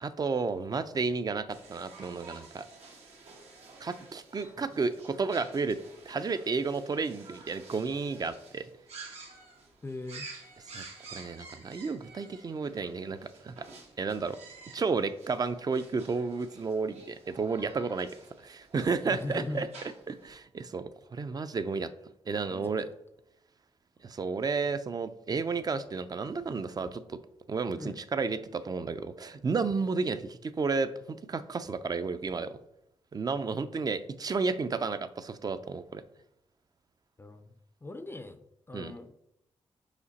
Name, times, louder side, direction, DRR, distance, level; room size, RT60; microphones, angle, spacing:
voice 1, 0.0-2.7 3.8-5.8 6.1-8.7 10.7-10.8 11.1-13.6 14.0-14.4 14.7-18.1 18.4-19.7 20.1-21.9 22.3-22.8 24.0-27.2 27.5-32.6 33.1-36.0 38.7-38.9, right 4 dB, 35° right, 12 dB, 0.5 m, -32 dB
sound 1, 1.5-20.3, right 3 dB, 85° right, 1.4 m, -51 dB
voice 2, 9.8-10.2 19.0-19.7 22.5-22.7 27.8-28.0 33.9-34.0 37.2-37.5 37.8-39.1, left 2 dB, 20° left, 9 dB, 0.5 m, -40 dB
5.0 x 4.9 x 4.1 m, 0.80 s
cardioid pair, 85°, 11 cm